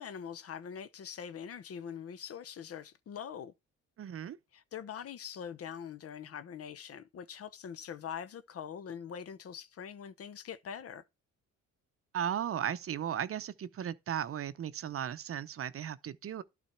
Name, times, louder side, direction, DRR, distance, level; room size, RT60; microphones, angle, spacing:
voice 1, 0.0-3.5 4.5-11.0, left 8 dB, 50° left, 0.8 m, -43 dB
voice 2, 4.0-4.4 12.1-16.4, right 9 dB, 50° right, 0.7 m, -36 dB
11.5 x 4.1 x 4.4 m
cardioid pair, 90°, 30 cm